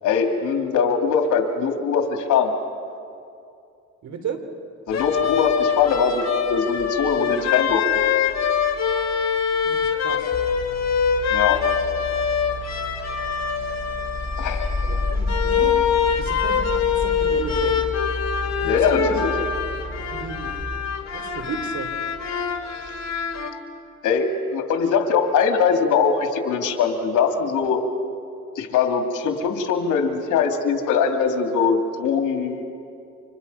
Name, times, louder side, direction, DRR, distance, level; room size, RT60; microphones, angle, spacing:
voice 1, 0.0-2.5 4.9-7.8 11.3-11.6 14.4-14.7 18.6-19.3 24.0-27.8 28.5-32.6, left 6 dB, 85° left, 4 dB, 2.7 m, -21 dB
voice 2, 4.0-4.4 9.6-10.3 14.8-15.9 16.2-17.8 18.6-19.2 20.1-20.5 21.1-21.9, right 5 dB, 70° right, 7 dB, 3.1 m, -34 dB
sound 1, 4.9-23.5, left 7 dB, 60° left, 2.6 m, -24 dB
sound 2, 10.3-20.6, left 2 dB, 25° left, 7.5 m, -31 dB
29.5 x 26.5 x 5.6 m, 2.5 s
cardioid pair, 90°, 30 cm